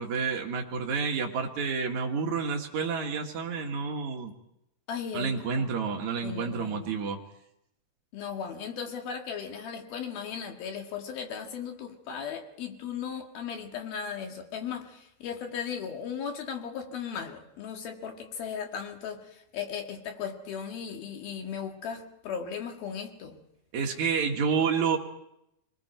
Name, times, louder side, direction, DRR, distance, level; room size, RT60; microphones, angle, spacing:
voice 1, 0.0-4.3 5.1-7.2 23.7-25.0, right 5 dB, 75° right, 2 dB, 1.7 m, -29 dB
voice 2, 4.9-5.7 6.2-6.9 8.1-23.4, left 7 dB, 55° left, 3 dB, 3.4 m, -37 dB
29.0 x 20.0 x 4.5 m, 0.81 s
omnidirectional pair, 6.0 m